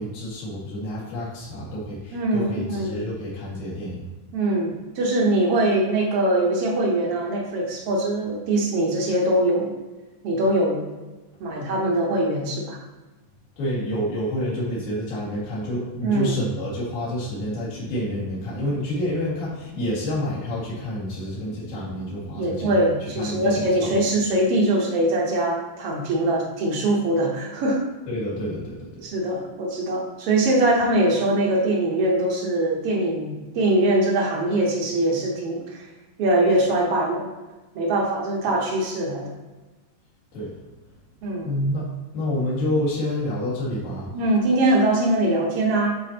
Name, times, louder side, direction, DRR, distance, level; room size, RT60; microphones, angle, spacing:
voice 1, 0.0-4.0 13.6-22.7 23.2-23.7 28.1-29.1 40.3-40.5 41.4-41.8 42.1-44.1, left 1 dB, 75° left, -8 dB, 3.7 m, -28 dB
voice 2, 2.1-3.0 4.3-9.7 10.2-10.8 11.4-12.8 16.0-16.3 22.4-27.8 29.0-35.9 36.2-37.3 37.7-39.3 41.2-41.5 44.1-46.0, right 1 dB, 70° right, -1 dB, 1.4 m, -22 dB
10.5 x 4.2 x 2.9 m, 1.2 s
omnidirectional pair, 4.0 m